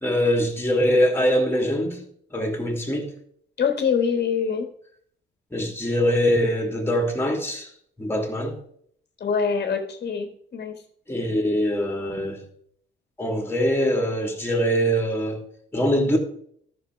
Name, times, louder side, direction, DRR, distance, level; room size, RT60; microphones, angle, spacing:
voice 1, 0.0-2.0 2.3-3.1 5.5-7.7 8.0-8.6 11.1-12.4 13.2-15.4 15.7-16.2, equal, 10° left, 3.0 m, -23 dB
voice 2, 3.6-4.7 9.2-10.7, left 6 dB, 50° left, 1.7 m, -24 dB
13.0 x 6.5 x 4.7 m
cardioid pair, 90°, 20 cm